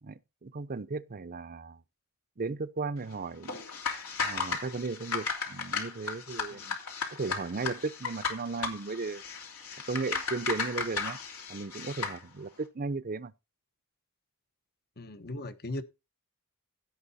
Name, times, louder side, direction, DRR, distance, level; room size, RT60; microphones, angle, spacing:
voice 1, 0.0-1.8 2.4-3.6 4.2-6.8 7.1-9.2 9.9-11.2 11.5-13.3, right 3 dB, 40° right, 0.7 m, -36 dB
sound 1, 3.4-12.2, left 5 dB, 80° left, 3.1 m, -35 dB
voice 2, 15.0-15.8, left 2 dB, 50° left, 1.1 m, -38 dB
16.5 x 5.6 x 4.2 m
head